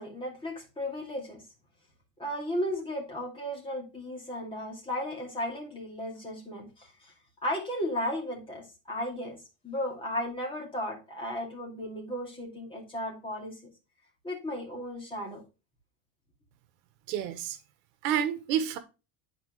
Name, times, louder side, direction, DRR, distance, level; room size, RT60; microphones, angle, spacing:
voice 1, 0.0-1.5 2.2-7.1 7.4-9.4 9.6-13.5 14.2-15.4, left 1 dB, 10° left, 2.5 m, -35 dB
voice 2, 17.1-17.6 18.0-18.8, right 9 dB, 80° right, 1.3 m, -29 dB
9.7 x 4.5 x 3.1 m
cardioid pair, 175°, 49 cm